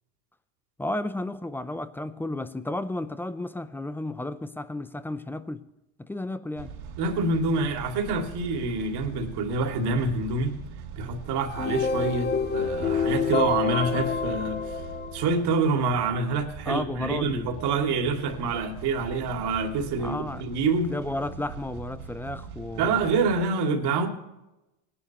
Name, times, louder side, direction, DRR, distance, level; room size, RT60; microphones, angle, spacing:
voice 1, 0.8-5.7 6.0-6.7 16.7-17.5 20.0-20.4 20.9-23.0, left 2 dB, 5° left, 0.4 m, -33 dB
Drum Rhythms, 6.6-23.5, right 6 dB, 85° right, 3.8 m, -42 dB
voice 2, 7.0-10.6 11.0-14.8 15.1-20.9 22.8-24.1, right 4 dB, 60° right, 2.5 m, -26 dB
sound 1, 11.4-15.6, left 5 dB, 20° left, 0.8 m, -28 dB
19.0 x 11.0 x 3.0 m
supercardioid pair, 110°, 45 cm